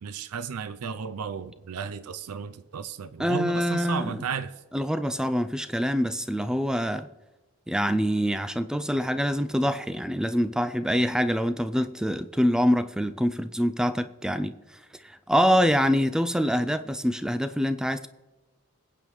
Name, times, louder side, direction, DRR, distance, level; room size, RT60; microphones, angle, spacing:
voice 1, 0.0-4.5, right 6 dB, 90° right, 0.5 m, -34 dB
voice 2, 3.2-4.2 4.7-7.1 7.7-18.1, equal, 5° right, 0.3 m, -25 dB
22.5 x 8.6 x 3.2 m
head